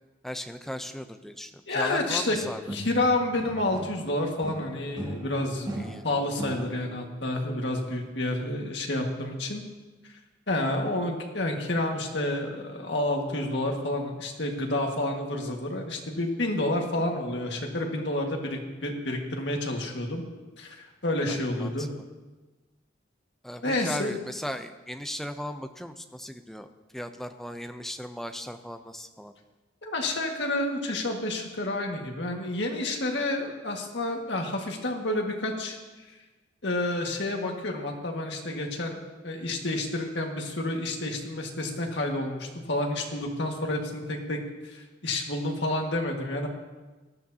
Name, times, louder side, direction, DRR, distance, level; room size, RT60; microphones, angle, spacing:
voice 1, 0.2-2.8 5.7-6.0 21.3-21.9 23.4-29.3, equal, ahead, 7 dB, 0.6 m, -37 dB
voice 2, 1.7-2.4 2.7-5.7 6.0-9.6 10.5-20.2 20.6-21.9 23.6-24.2 29.8-35.8 36.6-46.5, left 1 dB, 65° left, 1 dB, 1.8 m, -29 dB
sound 1, 2.3-4.1 4.4-7.0, right 1 dB, 20° right, 1.7 m, -38 dB
18.5 x 13.0 x 2.8 m, 1.2 s
head